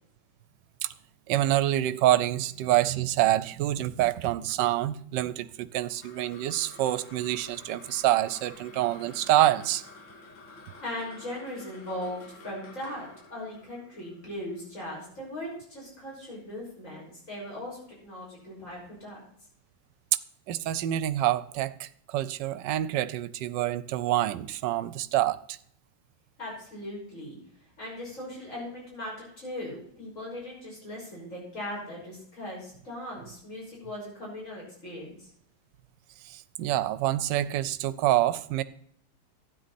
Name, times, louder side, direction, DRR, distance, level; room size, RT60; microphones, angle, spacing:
voice 1, 1.3-9.8 20.5-25.6 36.2-38.6, right 14 dB, 75° right, 1.2 m, -26 dB
sound 1, 5.8-16.4, left 3 dB, 85° left, 2.4 m, -50 dB
voice 2, 10.8-19.2 26.4-27.4 27.8-35.3, left 1 dB, 40° left, 6.4 m, -39 dB
12.5 x 9.4 x 4.2 m
omnidirectional pair, 2.0 m